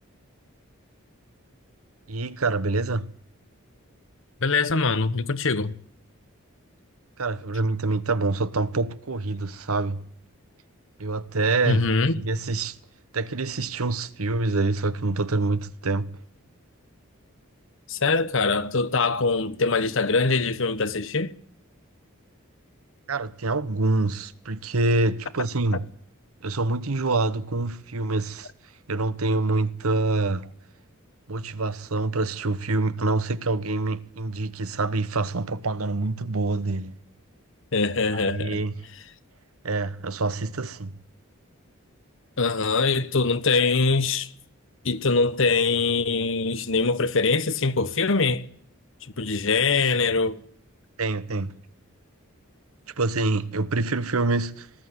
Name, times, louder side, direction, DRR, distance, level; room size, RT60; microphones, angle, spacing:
voice 1, 2.1-3.1 7.2-10.0 11.0-11.9 12.1-12.8 13.1-16.2 23.1-25.9 26.4-28.5 28.9-30.5 31.3-37.0 38.1-38.8 39.6-41.0 51.0-51.5 53.0-54.7, right 3 dB, 85° right, 1.1 m, -26 dB
voice 2, 4.4-5.7 11.7-12.2 17.9-21.3 37.7-38.6 42.4-44.3 44.8-48.4 49.2-50.4, left 4 dB, 60° left, 1.1 m, -23 dB
19.5 x 14.0 x 9.6 m
head